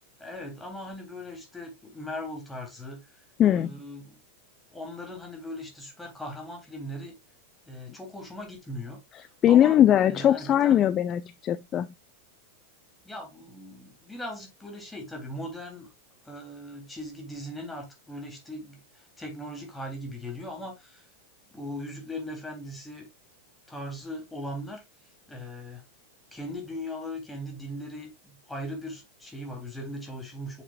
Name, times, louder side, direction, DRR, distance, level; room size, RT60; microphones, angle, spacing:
voice 1, 0.2-3.2 3.5-4.2 4.7-7.1 7.6-10.8 13.0-15.9 16.2-21.1 21.5-23.1 23.7-24.8 25.3-25.8 26.3-30.6, left 1 dB, 10° left, 3.4 m, -39 dB
voice 2, 3.4-3.7 9.4-11.9, left 11 dB, 30° left, 0.4 m, -20 dB
7.5 x 6.7 x 2.4 m
figure-of-eight pair, 90°, 0 cm